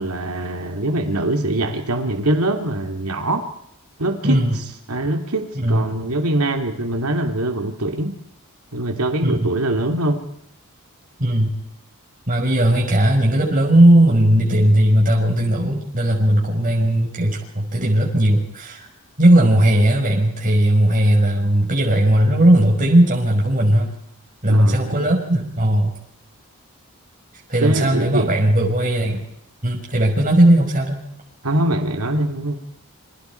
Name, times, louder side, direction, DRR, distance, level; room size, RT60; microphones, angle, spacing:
voice 1, 0.0-3.5 4.0-4.5 4.9-8.1 8.7-10.2 24.5-25.1 27.6-28.5 31.4-32.6, right 1 dB, 90° right, 4 dB, 3.0 m, -23 dB
voice 2, 4.2-4.6 5.6-5.9 9.2-9.5 11.2-11.6 12.3-18.9 19.2-23.9 24.4-25.9 27.5-29.3 29.6-31.0, right 1 dB, 40° right, -1 dB, 5.4 m, -17 dB
28.5 x 26.5 x 4.7 m, 0.74 s
head